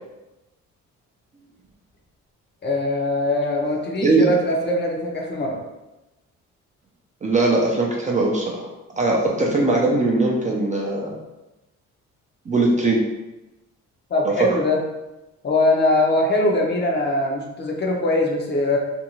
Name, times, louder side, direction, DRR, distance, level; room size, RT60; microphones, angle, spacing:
voice 1, 2.6-5.6 14.1-14.8 15.4-18.8, left 1 dB, 35° left, -1 dB, 0.6 m, -21 dB
voice 2, 7.2-11.1 12.5-13.1 14.2-14.5, right 2 dB, 25° right, -2 dB, 0.5 m, -20 dB
2.6 x 2.2 x 2.9 m, 1.0 s
cardioid pair, 90°, 30 cm